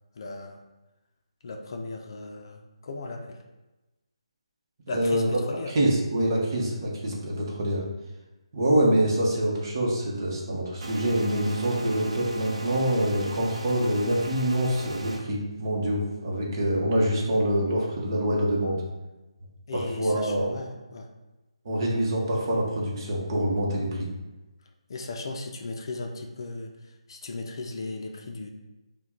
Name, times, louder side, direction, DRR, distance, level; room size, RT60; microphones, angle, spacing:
voice 1, 0.2-0.6 1.4-3.4 4.9-5.7 19.7-21.1 24.9-28.5, left 3 dB, 45° left, 3 dB, 0.5 m, -37 dB
voice 2, 4.9-5.3 5.7-7.8 8.5-18.8 19.7-20.5 21.6-24.1, right 1 dB, 40° right, -3 dB, 1.0 m, -25 dB
sound 1, 10.8-15.2, right 2 dB, 70° right, 0.7 m, -38 dB
5.6 x 2.3 x 3.7 m, 1.1 s
hypercardioid pair, 165°, 3 cm